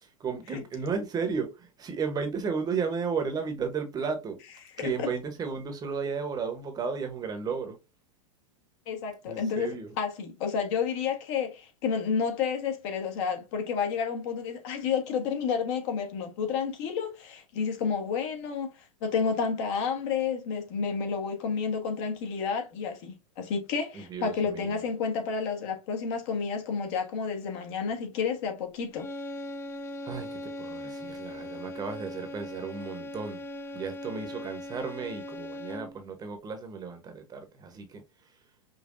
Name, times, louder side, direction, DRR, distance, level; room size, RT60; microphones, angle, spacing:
voice 1, 0.0-4.4 4.8-7.8 9.3-9.9 23.9-24.8 30.0-33.4 33.7-38.0, right 5 dB, 20° right, 0.9 m, -34 dB
voice 2, 4.8-5.1 8.9-18.7 19.0-29.1, left 6 dB, 55° left, 1.2 m, -30 dB
sound 1, 28.9-36.1, left 1 dB, 15° left, 0.4 m, -39 dB
5.3 x 2.2 x 2.5 m
hypercardioid pair, 125°, 17 cm